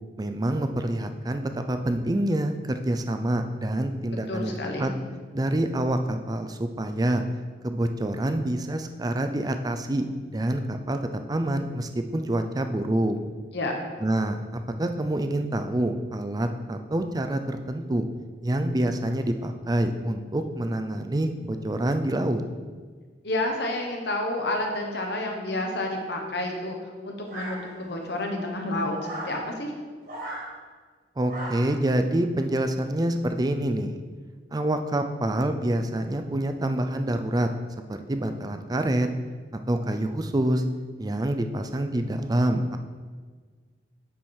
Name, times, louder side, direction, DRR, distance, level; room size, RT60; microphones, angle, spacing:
voice 1, 0.2-4.9 5.3-7.2 7.6-11.0 11.3-13.2 14.0-18.1 18.4-22.4 31.2-34.0 34.5-37.5 37.9-39.1 39.7-40.6 41.0-42.8, right 1 dB, 20° right, 7 dB, 0.5 m, -27 dB
voice 2, 4.3-4.9 13.5-13.8 23.2-26.8 27.0-29.7, left 1 dB, 65° left, 2 dB, 1.2 m, -29 dB
sound 1, 27.3-28.0 29.0-29.4 30.0-30.5 31.3-31.8, right 1 dB, 55° right, 2.2 m, -36 dB
9.0 x 4.8 x 4.4 m, 1.5 s
head